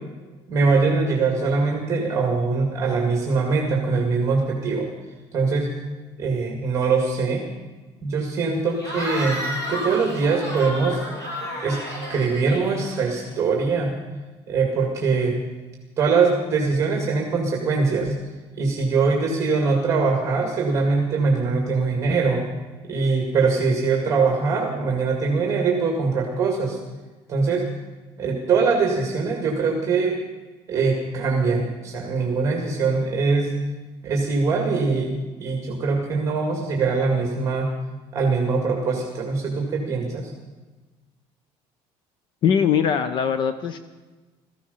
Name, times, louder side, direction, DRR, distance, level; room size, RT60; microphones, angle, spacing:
voice 1, 0.5-4.9 5.3-5.7 6.2-7.5 8.0-9.4 9.7-11.0 11.6-11.8 12.1-14.0 14.5-15.4 16.0-18.1 18.6-22.4 22.9-26.8 27.3-27.7 28.2-30.2 30.7-33.5 34.0-35.1 35.4-37.7 38.1-40.3, right 4 dB, 25° right, 0 dB, 2.1 m, -22 dB
Cheering / Crowd, 8.8-13.4, equal, 30° left, 3.2 m, -32 dB
voice 2, 42.4-43.8, left 7 dB, 45° left, 11 dB, 0.7 m, -21 dB
17.0 x 14.5 x 5.6 m, 1.2 s
cardioid pair, 170°, 11 cm